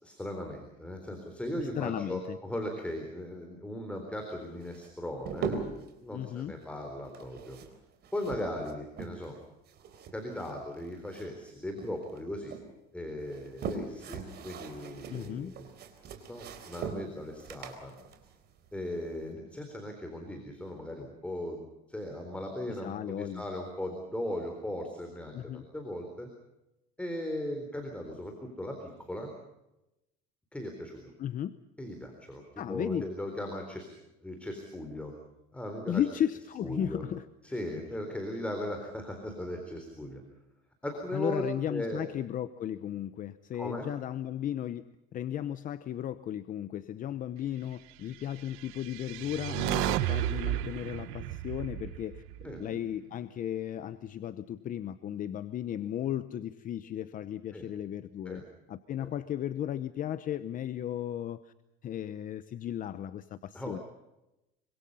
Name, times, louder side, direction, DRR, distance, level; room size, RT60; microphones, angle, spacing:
voice 1, 0.0-5.6 6.0-7.6 8.1-9.4 10.1-12.6 12.9-15.7 16.3-17.9 18.7-26.3 27.0-29.3 30.5-31.1 31.8-33.9 34.2-35.1 35.5-36.0 36.6-37.0 37.4-40.2 40.8-42.0 43.5-43.9 52.4-52.6 57.5-57.7 58.3-58.4 59.0-59.1 63.5-63.8, left 1 dB, 5° left, 3 dB, 4.0 m, -38 dB
voice 2, 1.8-2.4 6.1-6.6 15.1-15.5 22.7-23.4 25.3-25.6 31.2-31.6 32.6-33.1 35.9-37.2 41.1-52.2 52.6-58.4 58.7-61.5 61.8-63.8, left 10 dB, 40° left, 13 dB, 0.9 m, -35 dB
sound 1, 4.6-5.9 7.0-9.4 9.7-11.5 11.8-12.7 13.2-19.3, right 5 dB, 50° right, 4.0 m, -41 dB
sound 2, 48.6-52.9, right 14 dB, 80° right, 1.2 m, -33 dB
26.0 x 25.0 x 5.6 m, 0.91 s
cardioid pair, 150°, 21 cm